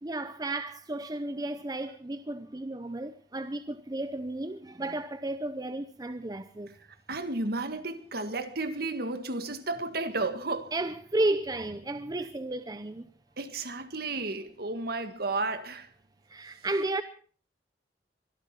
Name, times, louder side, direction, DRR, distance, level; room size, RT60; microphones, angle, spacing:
voice 1, 0.0-6.7 10.7-13.1 16.3-17.0, right 2 dB, 20° right, 0.7 m, -33 dB
voice 2, 7.1-10.7 13.4-15.9, right 3 dB, 60° right, 1.8 m, -32 dB
23.5 x 13.0 x 4.4 m
head